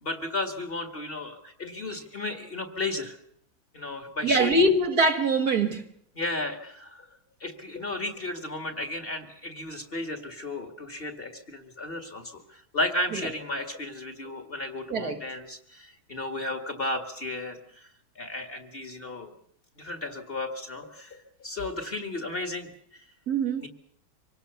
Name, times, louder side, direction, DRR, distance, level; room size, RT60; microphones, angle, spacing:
voice 1, 0.0-3.2 3.7-4.6 6.2-7.1 7.4-17.6 18.2-19.3 19.8-22.7 23.6-23.7, left 2 dB, 30° left, 2.2 m, -34 dB
voice 2, 4.2-5.9 14.9-15.2 23.3-23.6, right 2 dB, 50° right, 1.8 m, -23 dB
25.5 x 18.5 x 6.9 m
omnidirectional pair, 2.2 m